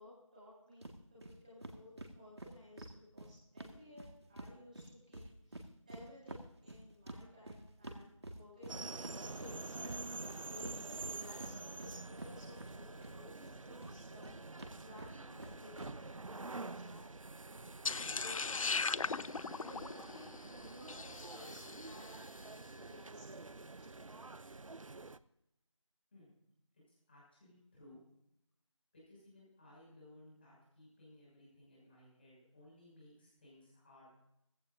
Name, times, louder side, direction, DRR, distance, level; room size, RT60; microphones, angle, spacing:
voice 1, 0.0-17.1 17.3-19.2 19.5-22.2 22.7-23.9, left 1 dB, 15° right, -9 dB, 3.5 m, -57 dB
sound 1, 0.8-1.3 1.6-4.5 4.8-13.1 13.4-15.9, right 1 dB, 55° right, 1.8 m, -49 dB
sound 2, 8.7-25.2, right 3 dB, 80° right, 0.7 m, -47 dB
sound 3, 17.9-22.2, left 4 dB, 85° left, 0.4 m, -38 dB
voice 2, 26.9-28.0 28.9-34.1, left 1 dB, 20° left, -6 dB, 6.2 m, -60 dB
18.0 x 16.0 x 2.7 m, 0.81 s
figure-of-eight pair, 175°, 17 cm